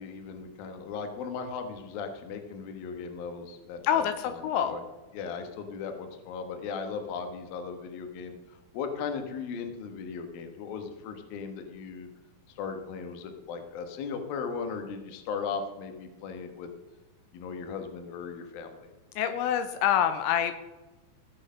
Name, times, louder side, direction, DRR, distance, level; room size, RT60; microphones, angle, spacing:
voice 1, 0.0-4.8 5.1-12.1 12.5-16.7 17.3-18.9, left 5 dB, 65° left, 6 dB, 2.7 m, -37 dB
voice 2, 3.8-4.7 19.2-20.6, left 9 dB, 85° left, 9 dB, 3.1 m, -26 dB
16.0 x 6.7 x 6.4 m, 1.1 s
omnidirectional pair, 5.3 m